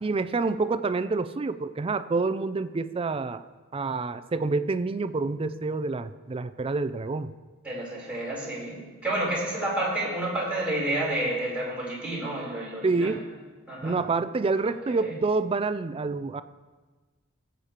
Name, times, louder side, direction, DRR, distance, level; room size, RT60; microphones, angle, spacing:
voice 1, 0.0-3.4 3.7-7.3 12.8-13.2 13.8-16.4, right 3 dB, 30° right, 13 dB, 0.4 m, -27 dB
voice 2, 7.6-13.1 13.7-14.0 14.9-15.1, right 1 dB, 5° right, -7 dB, 3.7 m, -30 dB
20.5 x 8.2 x 2.9 m, 1.3 s
head